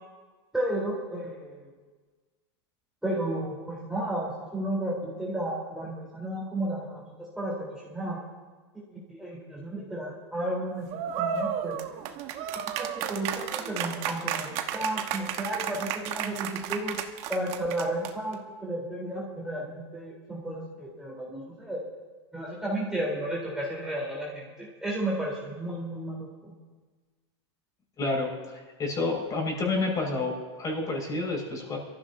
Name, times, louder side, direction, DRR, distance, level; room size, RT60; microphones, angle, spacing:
voice 1, 0.5-1.7 3.0-8.2 8.9-11.8 12.8-17.0 17.3-21.8 22.3-26.5, right 1 dB, 5° right, -5 dB, 3.7 m, -33 dB
sound 1, 10.9-18.3, right 9 dB, 45° right, 1.3 m, -33 dB
voice 2, 28.0-28.3 28.8-31.8, left 3 dB, 25° left, 0 dB, 5.4 m, -29 dB
23.5 x 14.5 x 2.7 m, 1.4 s
supercardioid pair, 130°, 14 cm